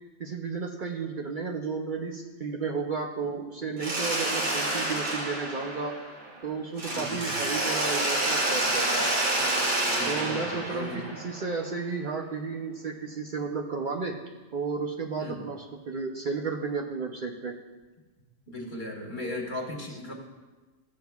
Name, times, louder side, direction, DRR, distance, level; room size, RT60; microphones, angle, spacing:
voice 1, 0.2-5.9 6.4-9.1 10.1-14.2 14.5-17.5, right 5 dB, 50° right, 1 dB, 0.7 m, -33 dB
Mechanisms, 3.8-6.4 6.8-11.6, right 1 dB, 85° right, 1.8 m, -28 dB
voice 2, 6.9-7.2 9.9-11.1 15.2-15.4 18.5-20.1, left 1 dB, 45° left, -1 dB, 1.5 m, -37 dB
14.5 x 7.4 x 2.3 m, 1.2 s
omnidirectional pair, 1.2 m